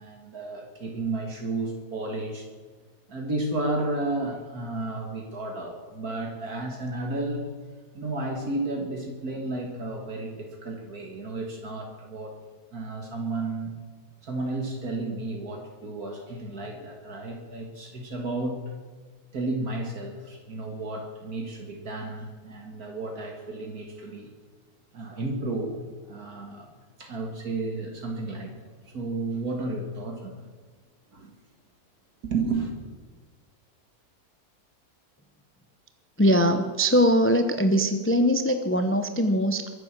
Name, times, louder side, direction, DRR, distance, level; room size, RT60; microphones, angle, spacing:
voice 1, 0.0-2.5 3.1-7.5 7.9-12.4 12.7-13.8 14.2-18.7 19.3-24.3 24.9-26.7 27.0-28.6 28.9-30.5 31.1-31.3 32.2-32.7, right 2 dB, 65° right, 2 dB, 2.3 m, -32 dB
voice 2, 36.2-39.7, equal, 15° left, 8 dB, 0.5 m, -22 dB
22.5 x 7.7 x 7.5 m, 1.5 s
omnidirectional pair, 1.7 m